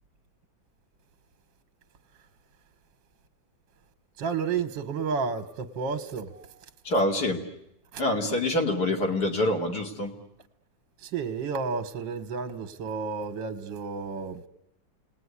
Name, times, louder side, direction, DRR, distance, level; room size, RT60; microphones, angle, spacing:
voice 1, 4.2-6.7 7.9-8.0 11.0-14.4, right 5 dB, 75° right, 1.9 m, -31 dB
voice 2, 6.8-7.4 8.0-10.1, left 1 dB, 55° left, 3.0 m, -26 dB
28.0 x 19.5 x 9.7 m
omnidirectional pair, 2.1 m